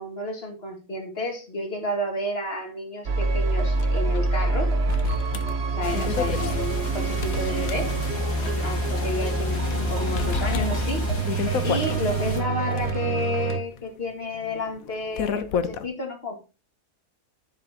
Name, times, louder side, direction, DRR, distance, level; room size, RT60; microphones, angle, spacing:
voice 1, 0.0-4.7 5.7-7.9 8.6-11.1 11.6-16.4, left 1 dB, 40° left, 2 dB, 2.4 m, -31 dB
sound 1, 3.1-13.6, right 3 dB, 45° right, 1.3 m, -26 dB
sound 2, 3.8-3.9 4.1-4.2 4.9-8.3 8.6-8.7 9.3-9.8 10.2-12.0 12.6-15.9, left 7 dB, 65° left, 1.1 m, -31 dB
sound 3, 5.8-12.4, left 1 dB, 85° left, 2.9 m, -33 dB
10.5 x 7.8 x 2.9 m, 0.31 s
omnidirectional pair, 1.7 m